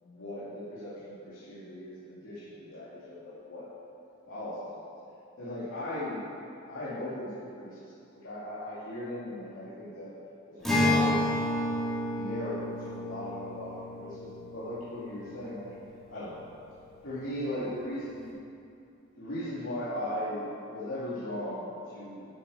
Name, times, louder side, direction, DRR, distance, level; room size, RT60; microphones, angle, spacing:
voice 1, 0.0-3.7 4.3-4.8 5.4-6.2 6.7-10.1 10.5-11.2 12.1-15.7 16.1-16.5 17.0-18.3 19.2-22.3, left 1 dB, 90° left, -11 dB, 2.6 m, -38 dB
Acoustic guitar, 10.6-16.1, left 1 dB, ahead, 2.4 m, -31 dB
12.0 x 8.8 x 5.0 m, 2.6 s
head